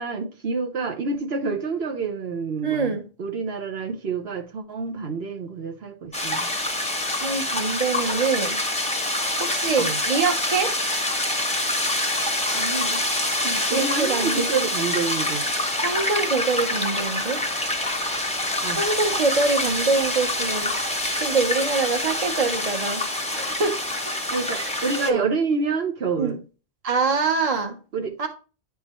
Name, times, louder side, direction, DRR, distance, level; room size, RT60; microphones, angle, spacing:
voice 1, 0.0-6.5 9.7-10.0 12.5-13.0 13.4-15.5 18.6-18.8 24.3-26.4 27.9-28.2, right 4 dB, 65° right, 1.1 m, -28 dB
voice 2, 2.6-3.0 7.1-8.6 9.4-10.7 13.7-14.6 15.8-17.4 18.7-20.8 21.2-23.0 23.3-23.8 24.5-24.7 25.0-25.3 26.2-26.4 26.8-27.8 28.2-28.3, right 4 dB, 35° right, 1.0 m, -24 dB
sound 1, 6.1-25.1, left 1 dB, 5° left, 0.7 m, -26 dB
9.8 x 3.8 x 3.0 m
omnidirectional pair, 1.1 m